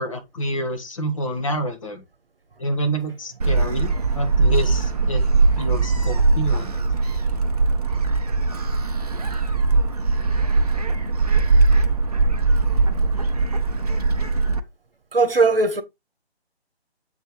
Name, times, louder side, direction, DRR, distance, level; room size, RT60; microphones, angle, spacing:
voice 1, 0.0-2.0 2.6-5.3 5.6-6.7, right 1 dB, 30° left, 1.5 m, -27 dB
Gull seagull, 3.4-14.6, right 3 dB, 35° right, 0.7 m, -20 dB
voice 2, 15.1-15.8, right 3 dB, 60° right, 1.6 m, -18 dB
7.8 x 3.4 x 4.6 m
figure-of-eight pair, 150°, 33 cm